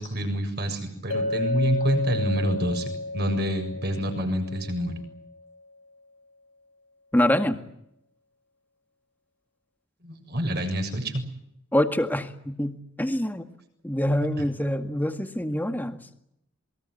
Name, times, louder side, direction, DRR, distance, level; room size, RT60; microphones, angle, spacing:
voice 1, 0.0-4.9 10.0-11.2, equal, 50° right, 6 dB, 7.1 m, -27 dB
Chink clink, 1.1-5.3, left 2 dB, 75° left, 4.4 m, -32 dB
voice 2, 7.1-7.6 11.7-13.5 13.8-16.0, left 1 dB, 10° left, 7 dB, 1.9 m, -25 dB
27.5 x 22.5 x 8.0 m, 0.78 s
head